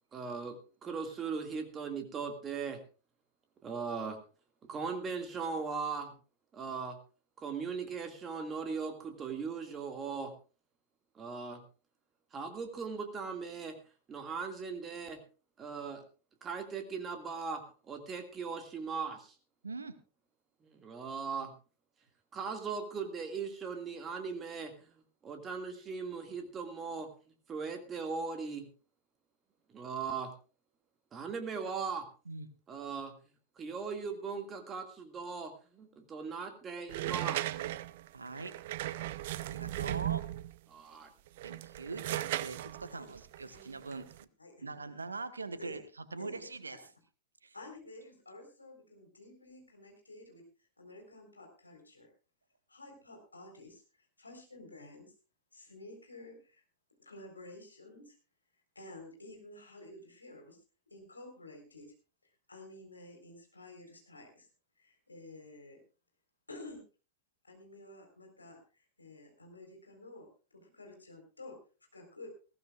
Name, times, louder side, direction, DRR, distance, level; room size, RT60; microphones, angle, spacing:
voice 1, 0.1-2.8 3.6-4.2 4.7-6.2 6.5-7.0 7.4-10.3 11.2-11.6 12.3-13.8 14.1-15.2 15.6-16.0 16.4-19.3 20.6-21.5 22.3-24.9 25.2-27.1 27.5-28.7 29.7-30.3 31.1-32.1 32.7-33.1 33.6-37.6 40.7-41.1, right 5 dB, 25° right, 5 dB, 2.1 m, -39 dB
voice 2, 19.6-20.0 32.2-32.5 38.1-38.6 39.4-40.3 41.4-44.3 44.6-45.8 46.1-46.8 47.4-47.5, right 3 dB, 75° right, 12 dB, 1.3 m, -42 dB
sound 1, 36.9-40.6 41.3-44.2, right 15 dB, 55° right, 0.6 m, -37 dB
voice 3, 44.4-44.7 45.6-45.8 46.2-46.8 47.5-50.4 50.8-52.1 52.7-55.1 55.5-56.6 57.0-58.2 58.7-60.6 60.9-61.9 62.2-64.5 64.8-65.8 66.5-66.8 67.4-70.3 70.5-71.6 71.9-72.3, left 2 dB, 80° left, 3 dB, 4.2 m, -51 dB
20.5 x 15.5 x 2.4 m, 0.35 s
figure-of-eight pair, 90°, 0 cm